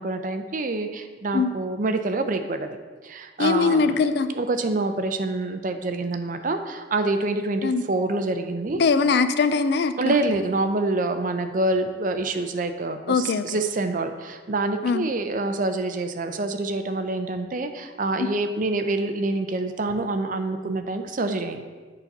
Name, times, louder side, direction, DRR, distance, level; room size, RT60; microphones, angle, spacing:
voice 1, 0.0-2.8 3.0-4.0 4.3-8.8 10.0-21.6, right 2 dB, 40° right, 8 dB, 0.5 m, -26 dB
voice 2, 3.4-4.3 7.6-7.8 8.7-10.1 13.1-13.4 14.8-15.0, left 4 dB, 55° left, 11 dB, 0.4 m, -21 dB
8.2 x 4.1 x 5.8 m, 1.4 s
head